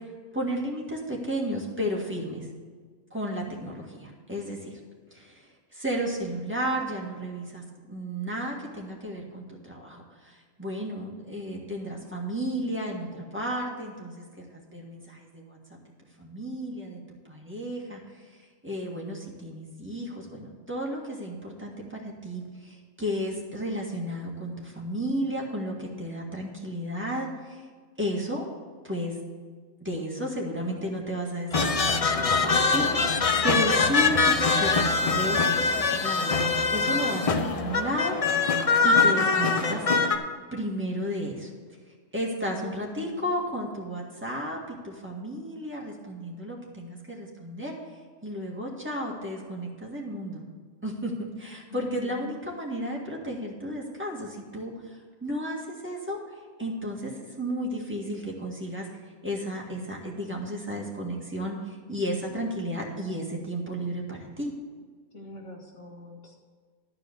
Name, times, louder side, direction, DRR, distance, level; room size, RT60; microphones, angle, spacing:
voice 1, 0.3-2.5 3.1-4.8 5.1-15.6 16.2-17.0 17.3-18.0 18.6-27.7 28.0-28.4 28.8-29.2 29.8-39.8 40.5-41.5 42.1-47.7 48.2-50.4 50.8-56.2 56.6-58.9 59.2-64.5, equal, 10° right, -3 dB, 1.7 m, -33 dB
sound 1, 31.5-40.2, left 4 dB, 40° left, 0.5 m, -23 dB
voice 2, 42.5-43.4 51.7-52.3 65.1-66.4, left 2 dB, 65° left, -2 dB, 2.1 m, -43 dB
12.0 x 4.9 x 7.9 m, 1.5 s
omnidirectional pair, 1.3 m